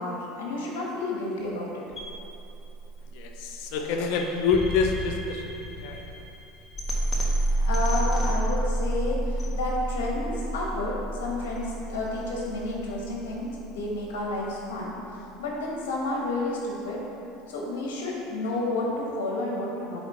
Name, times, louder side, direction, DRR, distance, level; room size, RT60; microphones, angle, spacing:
voice 1, 0.0-1.8 7.5-14.9 15.4-17.0 17.5-20.0, left 2 dB, 85° left, -3 dB, 1.2 m, -31 dB
sound 1, 1.9-14.0, right 1 dB, 20° left, 1.3 m, -30 dB
voice 2, 3.1-6.0, left 5 dB, 70° left, 3 dB, 0.7 m, -27 dB
7.9 x 3.6 x 4.3 m, 2.9 s
supercardioid pair, 110°, 0 cm